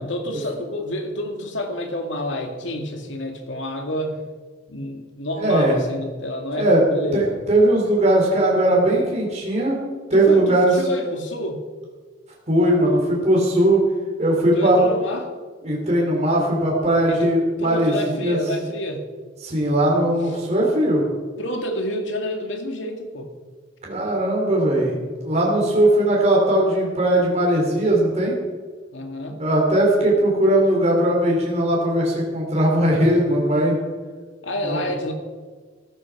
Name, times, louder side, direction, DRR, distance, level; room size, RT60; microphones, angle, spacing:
voice 1, 0.0-4.2 4.7-7.4 10.1-11.6 14.5-15.3 17.1-19.0 21.4-23.3 28.9-29.4 34.4-35.1, left 1 dB, 75° left, 4 dB, 2.3 m, -28 dB
voice 2, 5.4-5.8 6.5-6.8 7.1-9.8 10.1-10.7 12.5-13.9 14.2-14.8 15.6-18.4 19.4-21.0 23.8-28.3 29.4-33.8 34.6-34.9, right 1 dB, 35° right, -3 dB, 3.4 m, -19 dB
14.5 x 14.0 x 4.9 m, 1.5 s
head